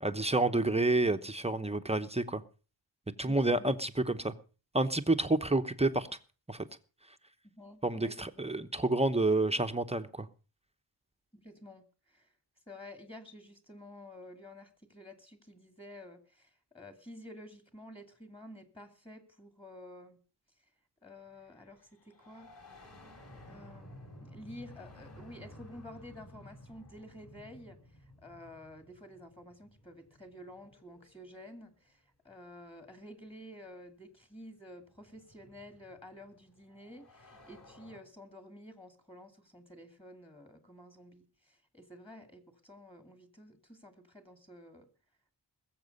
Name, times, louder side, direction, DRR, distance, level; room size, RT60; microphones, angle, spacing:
voice 1, 0.0-2.4 3.2-4.3 4.7-6.1 6.5-6.6 7.8-10.3, right 2 dB, 15° right, 0.9 m, -29 dB
voice 2, 3.2-3.5 7.4-8.3 11.3-12.3 12.7-20.2 21.0-22.5 23.5-44.9, left 1 dB, 15° left, 2.3 m, -51 dB
sound 1, 21.3-31.9 33.1-33.2 34.3-38.0, left 1 dB, 35° left, 4.1 m, -55 dB
21.0 x 7.4 x 5.3 m
wide cardioid pair, 90°, 42 cm